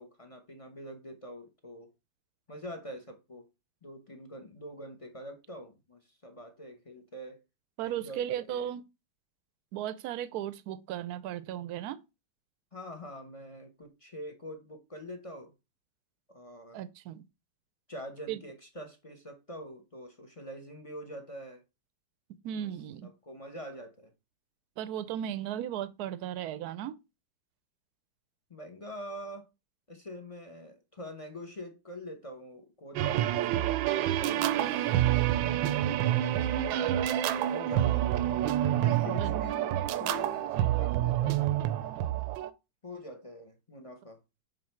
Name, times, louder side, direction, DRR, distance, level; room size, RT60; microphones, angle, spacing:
voice 1, 0.0-1.9 2.5-3.4 3.8-7.4 7.8-8.7 12.7-15.5 16.3-16.8 17.9-21.6 22.5-22.7 23.0-24.1 28.5-29.5 29.9-36.8 37.4-38.1 38.8-41.8 42.8-44.2, left 1 dB, 30° left, 0.6 m, -45 dB
voice 2, 7.8-8.8 9.7-12.0 16.7-17.2 18.3-18.4 22.4-23.1 24.8-27.0 39.2-39.3, right 11 dB, 70° right, 1.0 m, -36 dB
sound 1, 33.0-42.5, right 12 dB, 90° right, 1.3 m, -28 dB
6.5 x 3.8 x 4.4 m
omnidirectional pair, 2.0 m